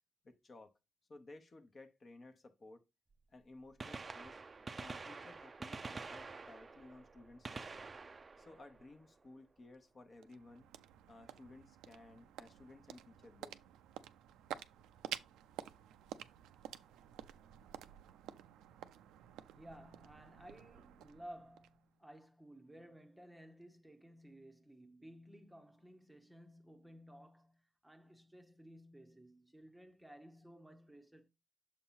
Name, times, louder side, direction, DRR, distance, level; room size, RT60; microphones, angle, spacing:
voice 1, 0.2-0.8 1.1-2.8 3.3-4.4 4.8-7.9 8.4-10.7 11.1-13.6, left 2 dB, 35° left, 0.9 m, -57 dB
Gunshot gunfire, 3.1-3.2 3.6-9.5 11.5-11.6 12.6-12.7 14.3-14.4 15.8-15.9 16.1-16.2, right 4 dB, 30° right, 0.5 m, -48 dB
sound 1, 9.7-22.2, right 11 dB, 90° right, 0.5 m, -51 dB
voice 2, 19.6-31.3, equal, 5° right, 0.8 m, -56 dB
7.0 x 2.9 x 5.6 m
cardioid pair, 90°, 0 cm